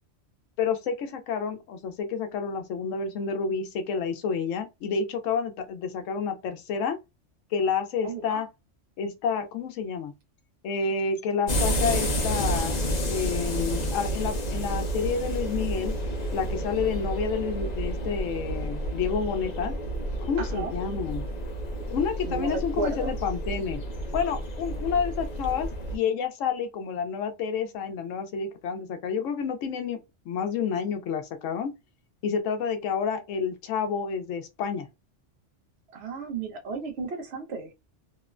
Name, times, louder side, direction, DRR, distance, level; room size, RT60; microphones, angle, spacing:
voice 1, 0.6-7.0 7.5-8.5 9.0-10.1 10.6-12.8 13.1-15.9 16.3-19.8 20.3-21.2 21.9-23.8 24.1-30.0 30.3-31.7 32.2-34.9, left 6 dB, 90° left, 0.9 m, -29 dB
voice 2, 8.0-8.4 20.4-20.7 22.2-23.1 35.9-37.7, right 3 dB, 65° right, 0.9 m, -33 dB
sound 1, 11.5-26.0, equal, 45° left, 0.6 m, -30 dB
3.0 x 2.1 x 2.3 m
omnidirectional pair, 1.3 m